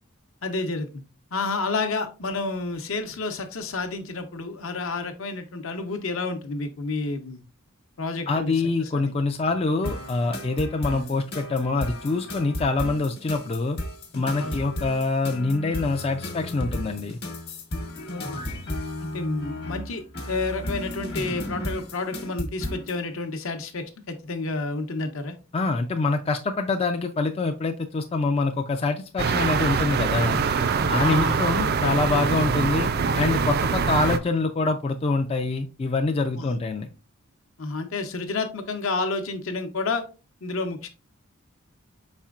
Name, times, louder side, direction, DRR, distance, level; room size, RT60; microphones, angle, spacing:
voice 1, 0.4-1.0 1.3-7.4 8.0-9.1 14.4-14.5 18.1-18.3 19.0-25.4 31.0-31.4 36.4-36.5 37.6-40.0 40.4-40.9, left 3 dB, 70° left, 6 dB, 0.8 m, -30 dB
voice 2, 8.3-13.8 14.1-17.2 25.5-30.4 30.9-32.9 33.2-36.9, left 3 dB, 30° left, 5 dB, 0.3 m, -25 dB
sound 1, 9.8-23.0, left 1 dB, 50° left, 1.1 m, -34 dB
sound 2, 29.2-34.2, right 5 dB, 45° right, 0.3 m, -24 dB
5.0 x 4.3 x 2.4 m, 0.31 s
head